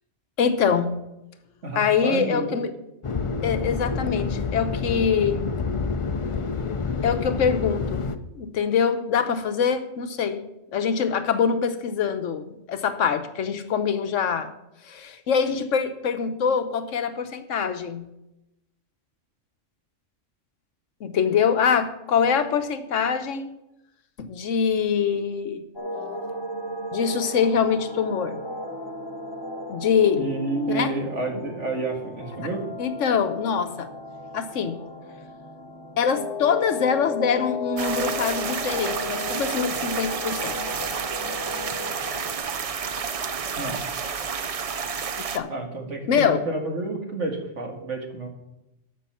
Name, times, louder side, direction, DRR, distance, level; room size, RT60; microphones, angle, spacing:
voice 1, 0.4-1.0 1.7-2.7 3.4-5.5 7.0-8.0 8.4-10.4 10.7-14.5 14.8-18.1 21.0-23.6 24.2-25.6 26.9-28.4 29.7-30.2 30.7-30.9 31.3-31.4 32.8-33.9 34.3-34.8 36.0-40.6 45.2-45.5 46.1-46.5, left 6 dB, 80° left, 9 dB, 1.2 m, -24 dB
voice 2, 1.6-2.6 30.2-32.7 43.6-43.8 45.5-48.3, right 2 dB, 70° right, 2 dB, 2.2 m, -30 dB
sound 1, 3.0-8.2, left 4 dB, 40° left, 0.4 m, -28 dB
sound 2, 25.8-42.4, left 2 dB, 20° left, 1.3 m, -35 dB
sound 3, 37.8-45.4, right 6 dB, 50° right, 0.4 m, -30 dB
13.0 x 5.5 x 5.7 m, 0.90 s
omnidirectional pair, 1.3 m